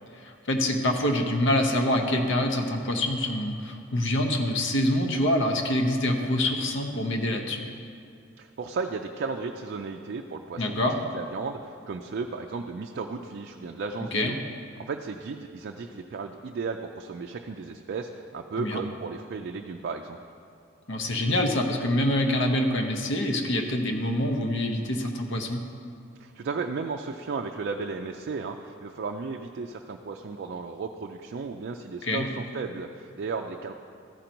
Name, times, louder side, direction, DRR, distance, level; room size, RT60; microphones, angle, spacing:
voice 1, 0.1-7.7 10.6-11.0 14.1-14.4 18.6-18.8 20.9-25.6 32.0-32.3, left 1 dB, 65° left, 4 dB, 0.9 m, -26 dB
voice 2, 8.4-14.3 14.9-20.2 26.2-33.7, right 4 dB, 55° right, 3 dB, 0.4 m, -34 dB
14.0 x 5.1 x 4.4 m, 2.4 s
head